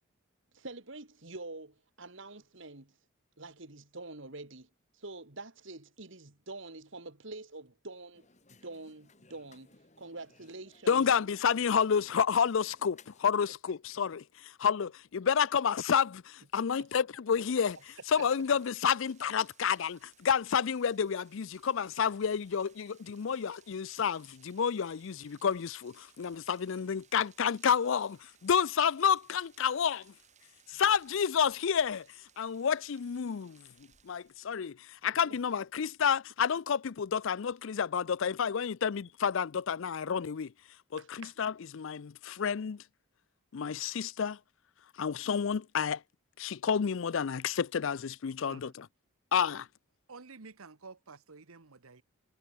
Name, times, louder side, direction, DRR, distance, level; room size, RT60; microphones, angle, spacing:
voice 1, 0.5-3.0 3.4-11.3 17.4-17.5 18.2-18.3 30.7-30.8 35.3-35.4 41.0-41.3 48.5-48.7, right 2 dB, 60° right, 2.3 m, -46 dB
sound 1, 8.1-13.3, left 4 dB, 35° left, 2.4 m, -62 dB
voice 2, 10.9-17.8 18.1-30.1 30.7-32.1 32.4-33.7 34.0-40.5 40.9-42.8 43.5-44.4 45.0-46.0 46.4-48.9 49.3-49.7, left 7 dB, 65° left, 0.4 m, -30 dB
Rain, 17.3-34.7, right 8 dB, 35° right, 6.4 m, -64 dB
voice 3, 50.1-52.0, right 4 dB, 80° right, 1.3 m, -50 dB
head